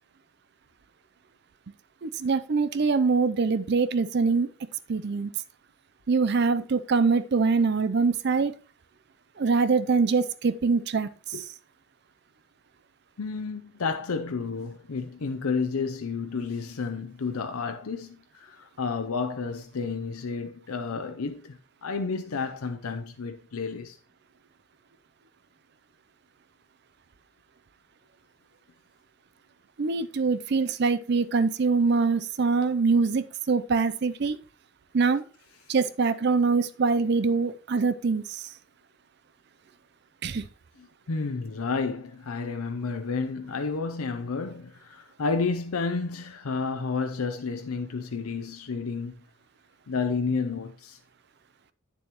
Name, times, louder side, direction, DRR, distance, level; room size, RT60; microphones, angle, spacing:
voice 1, 2.0-4.5 4.9-5.3 6.1-8.5 9.4-11.1 29.8-34.4 34.9-35.2 35.7-38.2 40.2-40.4, right 4 dB, 50° right, 0.5 m, -24 dB
voice 2, 13.2-24.0 40.8-49.1 49.9-51.0, left 4 dB, 90° left, 0.6 m, -31 dB
8.4 x 7.0 x 3.0 m
head